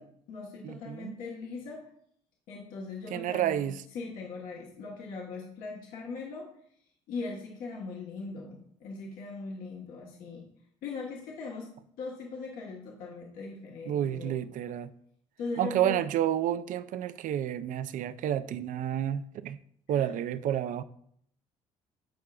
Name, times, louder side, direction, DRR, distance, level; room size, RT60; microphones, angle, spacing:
voice 1, 0.0-1.8 2.5-3.7 3.9-6.5 7.1-10.4 10.8-11.7 12.0-14.4 15.4-16.0 19.9-20.1, left 4 dB, 80° left, 1.2 m, -40 dB
voice 2, 0.6-1.2 3.1-3.8 13.9-14.9 15.6-19.6 19.9-20.8, right 11 dB, 65° right, 0.5 m, -30 dB
12.5 x 4.7 x 2.4 m
supercardioid pair, 65°, 14 cm